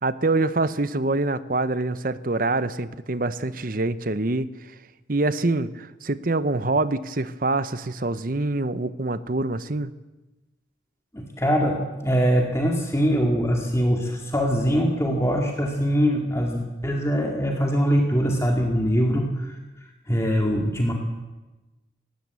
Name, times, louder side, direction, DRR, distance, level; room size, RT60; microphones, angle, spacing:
voice 1, 0.0-4.5 5.1-9.9, right 2 dB, 45° right, 14 dB, 0.8 m, -25 dB
voice 2, 11.1-19.6 20.1-20.9, equal, 15° left, 1 dB, 2.1 m, -23 dB
19.5 x 17.0 x 8.3 m, 1.1 s
head